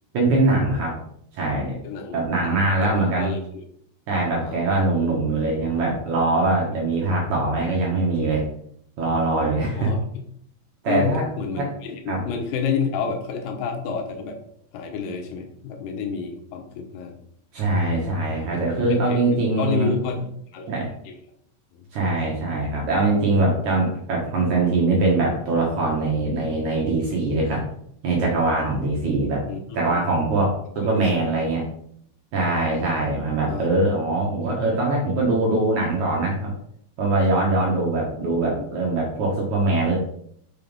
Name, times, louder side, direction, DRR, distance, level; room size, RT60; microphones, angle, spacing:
voice 1, 0.1-1.0 1.3-1.7 2.1-3.3 4.1-8.4 9.0-9.9 10.8-11.2 11.6-11.7 12.1-12.2 17.5-19.9 20.7-20.9 21.9-27.6 28.0-29.4 29.7-31.6 32.3-36.5 37.0-40.0, right 2 dB, 60° right, -2 dB, 2.2 m, -22 dB
voice 2, 1.8-3.6 4.4-4.7 9.8-10.0 10.9-14.4 14.7-17.2 18.5-20.3 20.5-20.7 21.1-21.2 21.7-21.8 29.5-30.0 30.8-31.2 33.5-33.7 38.4-38.6, left 6 dB, 80° left, 3 dB, 3.1 m, -30 dB
5.9 x 5.8 x 5.4 m, 0.68 s
omnidirectional pair, 4.9 m